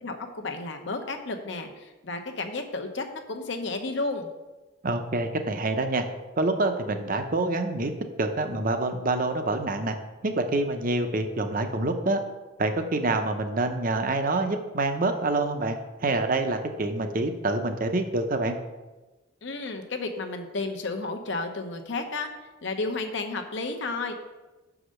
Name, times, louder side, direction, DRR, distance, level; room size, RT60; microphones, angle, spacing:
voice 1, 0.0-4.3 19.4-22.3 22.6-24.1, left 3 dB, 60° left, 5 dB, 0.9 m, -32 dB
voice 2, 4.8-6.0 6.4-7.9 8.2-10.0 10.2-12.2 12.6-18.6, right 2 dB, 45° right, 6 dB, 0.7 m, -26 dB
6.5 x 4.9 x 6.4 m, 1.2 s
head